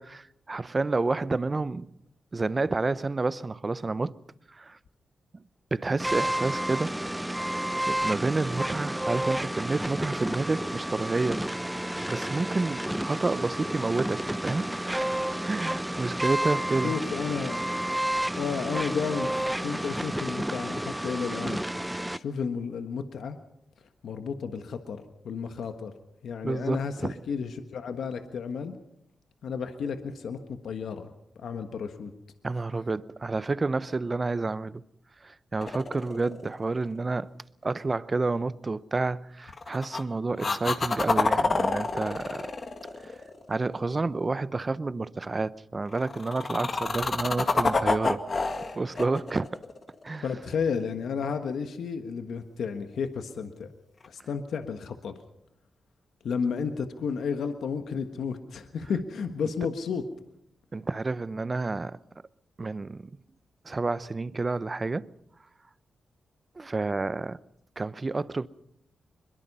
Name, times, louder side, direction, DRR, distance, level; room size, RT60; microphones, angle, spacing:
voice 1, 0.0-1.9 2.3-4.2 4.5-4.8 5.7-6.9 7.9-11.4 11.7-15.2 15.5-16.9 26.4-27.1 32.4-34.8 35.2-37.3 37.6-42.5 43.0-43.1 43.5-48.2 48.7-49.5 50.0-50.3 60.7-62.0 62.6-63.1 63.6-65.1 66.6-67.4 67.8-68.5, right 3 dB, 35° right, 0.8 m, -29 dB
sound 1, 6.0-22.2, right 1 dB, 10° right, 0.9 m, -31 dB
voice 2, 16.8-17.7 18.4-21.6 22.1-23.4 24.0-25.9 26.2-28.7 29.4-31.1 31.4-32.1 50.2-53.7 54.1-55.1 56.2-60.0, left 6 dB, 80° left, 1.4 m, -32 dB
sound 2, 35.6-36.8 39.5-40.0 40.4-43.7 45.9-50.3 54.0-54.1, left 3 dB, 50° left, 2.0 m, -28 dB
22.5 x 21.5 x 5.5 m
cardioid pair, 55°, 0 cm